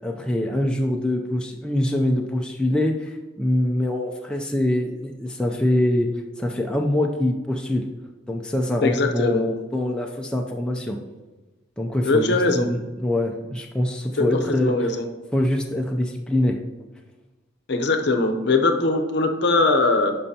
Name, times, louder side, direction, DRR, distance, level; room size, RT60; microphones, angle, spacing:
voice 1, 0.0-6.1 6.4-7.8 8.3-11.0 11.8-14.7 15.3-16.6, left 1 dB, 5° left, 1 dB, 0.4 m, -24 dB
voice 2, 8.8-9.4 12.0-12.7 14.2-14.3 14.6-15.1 17.7-20.1, left 3 dB, 55° left, 5 dB, 0.7 m, -21 dB
10.5 x 5.5 x 2.8 m, 1.2 s
head